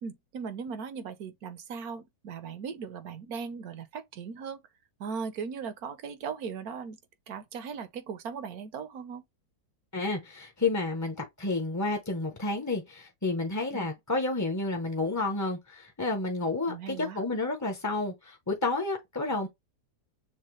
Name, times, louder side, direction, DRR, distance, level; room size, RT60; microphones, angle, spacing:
voice 1, 0.0-4.6 5.0-7.0 7.3-9.2 13.7-13.9 16.7-17.2, right 6 dB, 65° right, 1.3 m, -38 dB
voice 2, 9.9-19.5, left 3 dB, 15° left, 0.7 m, -30 dB
6.5 x 2.3 x 3.2 m
omnidirectional pair, 1.8 m